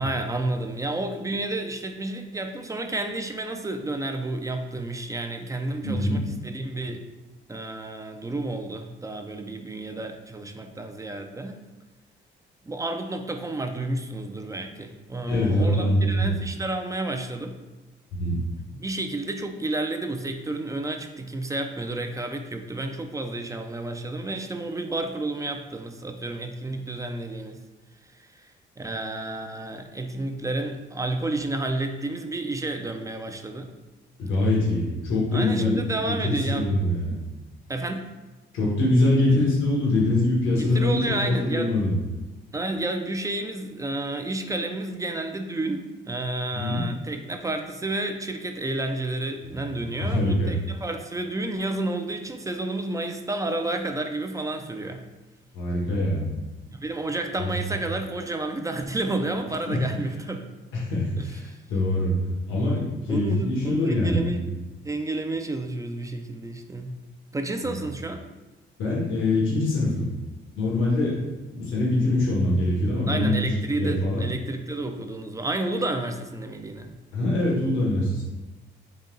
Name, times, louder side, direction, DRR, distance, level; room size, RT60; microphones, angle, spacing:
voice 1, 0.0-7.0 7.5-11.6 12.7-17.6 18.7-27.6 28.1-28.5 28.8-33.7 35.3-36.9 37.7-38.1 40.6-41.8 42.5-55.0 56.7-60.5 61.2-61.5 63.1-64.4 64.8-66.9 67.3-68.3 73.1-76.9, right 2 dB, 15° right, 5 dB, 0.4 m, -31 dB
voice 2, 5.8-6.2 15.3-16.3 18.1-18.4 34.2-35.8 36.1-37.2 38.5-41.9 46.5-46.8 49.4-50.6 55.5-56.3 57.4-57.5 59.7-59.8 60.7-62.1 62.5-64.4 68.8-70.1 70.5-71.2 71.5-73.4 73.8-74.2 77.1-78.2, left 1 dB, 85° left, -4 dB, 1.2 m, -24 dB
4.0 x 2.8 x 3.7 m, 1.2 s
cardioid pair, 90°, 20 cm